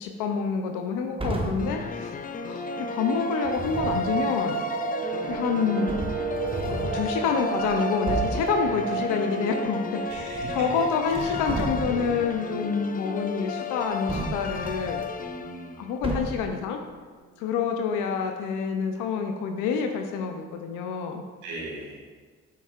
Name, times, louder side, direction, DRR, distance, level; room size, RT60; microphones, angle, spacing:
voice 1, 0.0-2.1 2.5-2.6 2.9-4.6 5.3-6.0 6.6-10.2 10.5-15.0 15.8-16.8 17.4-21.2, left 6 dB, 85° left, 4 dB, 0.6 m, -27 dB
sound 1, 1.2-1.8 3.4-4.1 5.3-5.4 5.9-7.1 7.6-7.7 8.1-8.5 10.1-10.8 11.1-12.2 14.1-15.0 16.0-16.6, right 2 dB, 20° right, 1.1 m, -32 dB
sound 2, 1.6-15.9, left 7 dB, 30° left, 0.4 m, -35 dB
sound 3, 2.4-13.2 13.5-13.6 13.9-14.1 14.5-15.0 15.5-15.6 15.8-16.3 16.6-16.7, right 7 dB, 65° right, 0.7 m, -33 dB
voice 2, 10.1-10.7 11.1-11.4 15.2-15.8 21.4-22.1, right 2 dB, 85° right, -3 dB, 1.4 m, -39 dB
7.2 x 5.7 x 2.4 m, 1.5 s
supercardioid pair, 50°, 30 cm